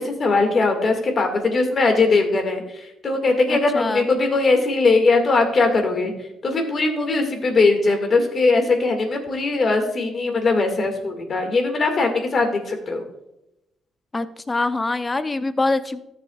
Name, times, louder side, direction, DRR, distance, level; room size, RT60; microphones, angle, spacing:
voice 1, 0.0-13.1, left 3 dB, 45° left, 5 dB, 2.0 m, -20 dB
voice 2, 3.5-4.0 14.1-16.0, left 3 dB, 25° left, 11 dB, 0.6 m, -24 dB
13.5 x 6.9 x 2.4 m, 0.89 s
cardioid pair, 90°, 0 cm